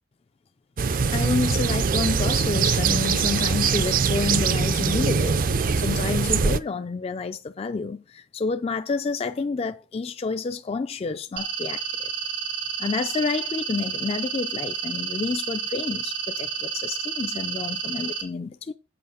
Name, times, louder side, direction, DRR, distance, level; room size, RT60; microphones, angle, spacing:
sound 1, 0.8-6.6, right 5 dB, 45° right, 0.4 m, -22 dB
voice 1, 1.1-11.8 12.8-18.7, left 4 dB, 30° left, 0.3 m, -29 dB
sound 2, 11.4-18.2, right 6 dB, 80° right, 2.0 m, -30 dB
7.8 x 4.8 x 6.7 m
head